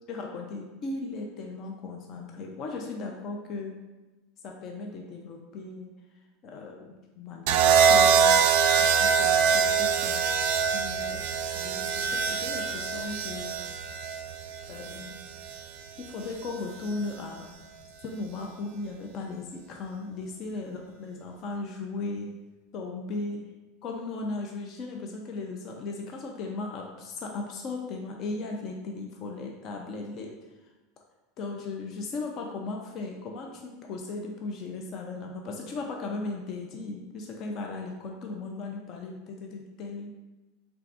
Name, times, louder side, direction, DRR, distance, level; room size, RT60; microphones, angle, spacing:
voice 1, 0.1-3.8 4.4-5.9 6.4-8.5 8.8-10.2 10.7-11.2 11.5-13.6 14.7-15.2 16.0-17.5 18.0-22.3 22.7-23.4 23.8-30.3 31.4-40.1, left 3 dB, 40° left, 1 dB, 0.5 m, -37 dB
sound 1, 7.5-15.6 16.8-17.2, right 6 dB, 70° right, 0.3 m, -24 dB
4.6 x 3.4 x 2.6 m, 1.1 s
supercardioid pair, 140°, 0 cm